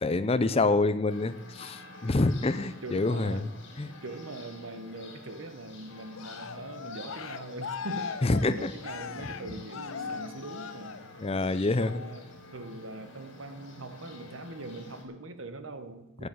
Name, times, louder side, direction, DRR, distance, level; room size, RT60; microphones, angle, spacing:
voice 1, 0.0-3.5 3.8-3.9 8.2-8.7 11.2-12.0, left 2 dB, 30° left, 14 dB, 0.6 m, -26 dB
sound 1, 1.1-15.0, left 2 dB, 60° left, 3.3 m, -48 dB
voice 2, 2.8-3.5 4.0-11.0 11.8-16.3, right 2 dB, 75° right, 10 dB, 1.3 m, -42 dB
Cheering, 6.1-11.4 11.8-12.2, left 6 dB, 75° left, 0.6 m, -40 dB
10.5 x 8.0 x 7.9 m, 0.95 s
head